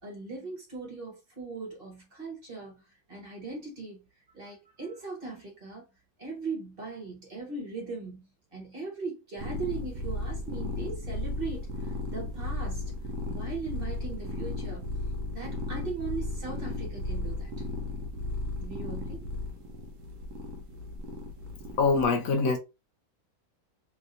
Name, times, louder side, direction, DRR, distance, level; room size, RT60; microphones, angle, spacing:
voice 1, 0.0-4.0 4.3-5.9 6.2-12.9 13.3-14.9 15.3-17.6 18.6-19.3, right 4 dB, 40° right, 1.3 m, -39 dB
sound 1, 9.4-22.0, left 2 dB, 65° right, 1.0 m, -35 dB
voice 2, 21.8-22.6, left 4 dB, 70° left, 1.0 m, -24 dB
3.2 x 2.8 x 2.5 m
omnidirectional pair, 1.6 m